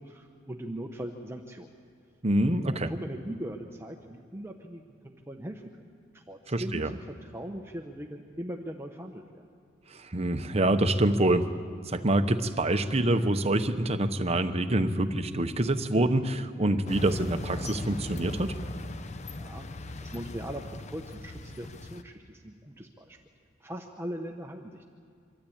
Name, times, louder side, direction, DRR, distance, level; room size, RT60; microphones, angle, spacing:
voice 1, 0.0-1.7 2.7-5.9 6.1-9.4 19.3-23.2 23.6-24.9, right 1 dB, 15° right, 3 dB, 0.8 m, -40 dB
voice 2, 2.2-2.9 6.5-6.9 9.9-11.5 11.8-18.5, right 1 dB, 30° right, 8 dB, 0.9 m, -26 dB
truck pickup pull up long and stop on gravel, 16.8-22.0, left 2 dB, 35° left, 0.7 m, -39 dB
24.5 x 13.0 x 8.7 m, 2.4 s
head